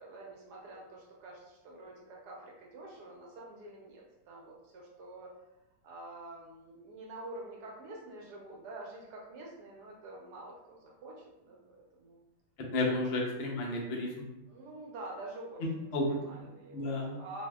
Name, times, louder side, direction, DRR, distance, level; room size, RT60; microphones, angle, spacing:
voice 1, 0.0-5.3 5.8-12.2 13.0-13.1 14.5-17.5, right 2 dB, 70° right, -3 dB, 1.1 m, -47 dB
voice 2, 12.7-14.1 15.6-16.2 16.7-17.2, left 2 dB, 70° left, -2 dB, 0.6 m, -32 dB
3.5 x 2.7 x 2.2 m, 0.95 s
omnidirectional pair, 1.9 m